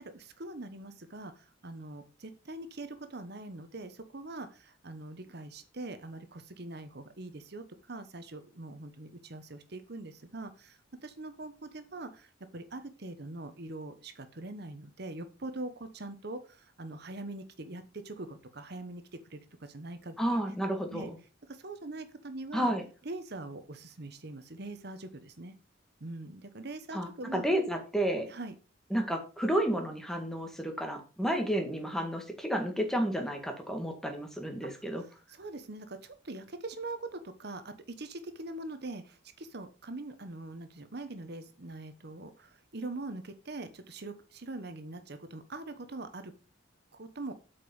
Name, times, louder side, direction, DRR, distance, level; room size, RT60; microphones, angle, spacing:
voice 1, 0.0-20.2 20.9-21.1 21.5-22.7 23.0-25.5 26.0-27.5 28.3-28.5 34.6-34.7 35.0-46.3 46.9-47.3, right 2 dB, 55° right, 9 dB, 1.1 m, -43 dB
voice 2, 20.2-21.2 22.5-22.8 26.9-28.3 28.9-35.0, right 1 dB, ahead, 4 dB, 1.9 m, -31 dB
8.5 x 5.2 x 7.1 m, 0.34 s
head